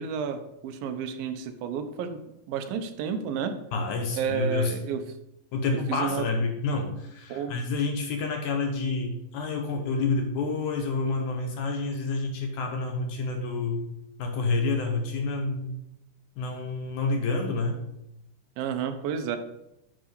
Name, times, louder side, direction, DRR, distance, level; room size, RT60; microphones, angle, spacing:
voice 1, 0.0-2.2 2.5-3.5 4.1-5.0 5.9-6.2 7.3-7.5 18.6-19.4, right 7 dB, 85° right, 8 dB, 2.5 m, -31 dB
voice 2, 3.7-4.8 5.5-13.9 14.2-15.8 16.4-17.8, left 3 dB, 70° left, 3 dB, 2.1 m, -28 dB
10.0 x 3.8 x 6.7 m, 0.84 s
omnidirectional pair, 4.1 m